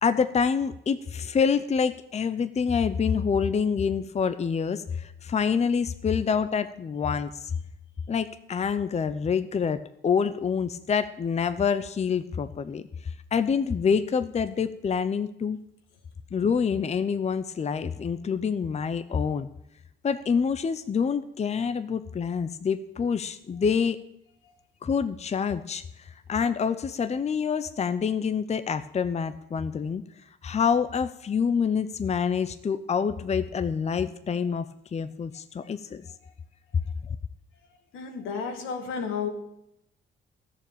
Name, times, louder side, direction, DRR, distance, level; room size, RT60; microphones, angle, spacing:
voice 1, 0.0-7.5 8.1-15.6 16.3-19.5 20.0-24.0 24.8-30.0 30.4-36.0 37.0-37.2, left 6 dB, 35° left, 11 dB, 0.7 m, -27 dB
voice 2, 37.9-39.3, left 6 dB, 85° left, 5 dB, 2.2 m, -33 dB
13.5 x 7.0 x 9.0 m, 0.79 s
cardioid pair, 90°, 20 cm